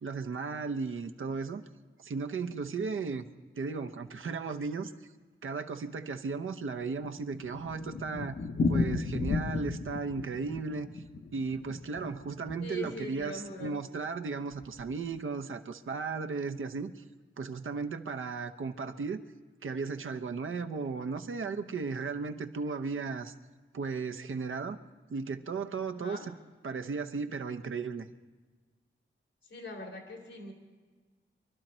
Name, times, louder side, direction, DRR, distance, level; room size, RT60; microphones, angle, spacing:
voice 1, 0.0-1.6 2.0-3.2 3.6-4.9 5.4-8.4 8.7-11.0 11.3-17.0 17.4-19.2 19.6-23.3 23.7-24.8 25.1-26.3 26.6-28.1, right 4 dB, 80° right, 8 dB, 0.8 m, -35 dB
Thunder, 6.7-13.0 13.2-13.3 13.6-13.7 13.9-14.0 14.6-14.9, left 3 dB, 55° left, 0.8 m, -34 dB
voice 2, 12.6-13.8 25.9-26.3 29.5-30.5, left 2 dB, 90° left, 1 dB, 2.6 m, -42 dB
24.0 x 12.0 x 4.4 m, 1.4 s
cardioid pair, 60°, 21 cm